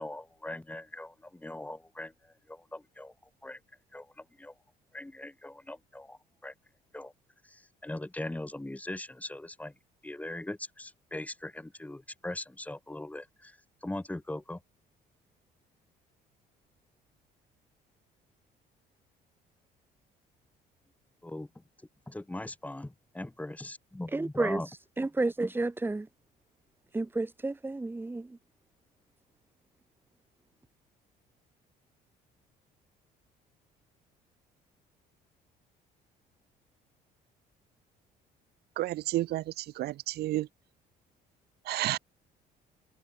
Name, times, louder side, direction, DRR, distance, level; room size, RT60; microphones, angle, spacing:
voice 1, 0.0-3.1 3.4-3.6 3.9-4.5 4.9-6.5 6.9-7.1 7.4-9.7 10.0-14.6 21.2-21.6 22.1-24.7, left 1 dB, 10° left, 5.4 m, -40 dB
voice 2, 24.1-24.6 25.0-26.1 26.9-28.4, right 2 dB, 10° right, 1.8 m, -31 dB
voice 3, 38.8-40.5 41.7-42.0, right 15 dB, 75° right, 1.2 m, -31 dB
cardioid pair, 110°, 17 cm